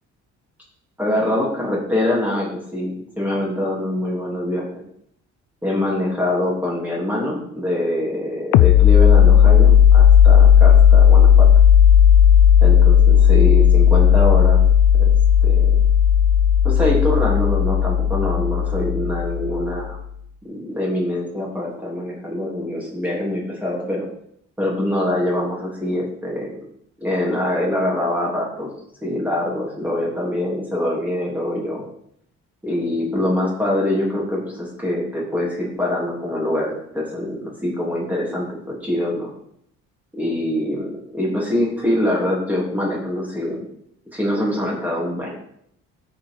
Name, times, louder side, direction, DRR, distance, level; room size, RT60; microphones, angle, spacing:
voice 1, 1.0-4.7 5.6-11.5 12.6-14.6 15.0-15.1 15.4-15.7 16.6-20.0 20.4-24.1 24.6-26.6 27.0-28.7 29.0-31.8 32.6-39.3 40.1-43.7 44.1-45.4, left 1 dB, 5° right, -4 dB, 3.4 m, -24 dB
sound 1, 8.5-19.9, left 9 dB, 80° left, 0.5 m, -13 dB
13.0 x 4.7 x 4.8 m, 0.69 s
cardioid pair, 155°, 29 cm